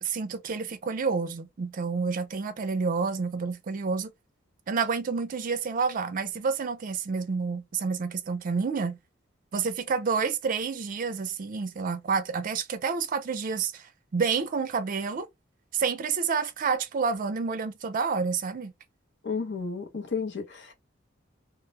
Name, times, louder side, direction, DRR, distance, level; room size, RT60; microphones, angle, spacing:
voice 1, 0.0-4.1 4.7-9.0 9.5-15.3 15.7-18.7, right 5 dB, 45° right, 0.4 m, -29 dB
voice 2, 19.2-20.7, left 5 dB, 65° left, 0.7 m, -32 dB
2.2 x 2.0 x 3.1 m
head